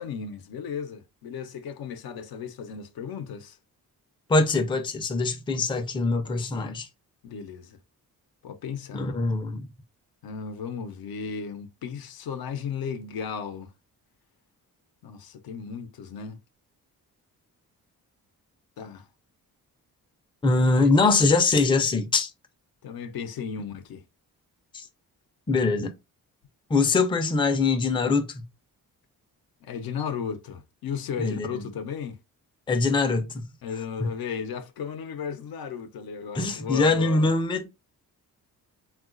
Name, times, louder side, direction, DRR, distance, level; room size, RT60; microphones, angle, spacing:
voice 1, 0.0-3.6 7.2-7.8 8.4-9.1 10.2-13.7 15.0-16.4 18.8-19.1 20.8-20.9 22.8-24.0 29.6-32.2 33.6-37.3, left 6 dB, 75° left, 0.6 m, -35 dB
voice 2, 4.3-6.9 8.9-9.7 20.4-22.3 24.7-24.8 25.5-25.9 26.7-28.4 31.2-31.6 32.7-33.4 36.3-37.7, left 3 dB, 15° left, 0.4 m, -23 dB
3.6 x 2.3 x 2.4 m
cardioid pair, 105°, 36 cm